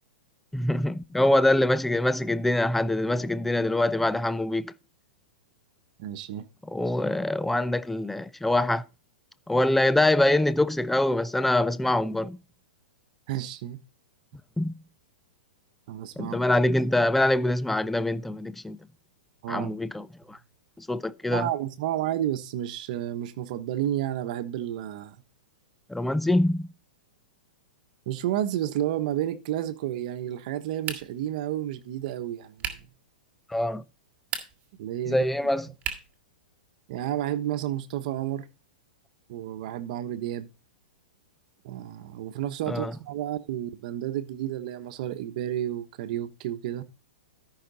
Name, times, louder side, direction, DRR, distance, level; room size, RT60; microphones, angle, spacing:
voice 1, 0.5-4.7 6.7-8.8 9.5-12.4 14.6-14.7 16.2-18.8 19.5-20.4 20.8-21.5 25.9-26.7 33.5-33.8 35.1-35.7 42.7-42.9, left 1 dB, 5° left, 0.4 m, -24 dB
voice 2, 6.0-6.5 13.3-13.8 15.9-16.4 19.4-19.8 21.3-25.2 28.1-32.9 34.8-35.2 36.9-38.5 39.3-40.5 41.6-46.8, right 12 dB, 55° right, 1.2 m, -31 dB
sound 1, 30.8-31.3 32.6-33.0 34.2-34.7 35.8-36.2, right 8 dB, 30° right, 1.8 m, -35 dB
13.5 x 5.9 x 4.1 m
hypercardioid pair, 135°, 5 cm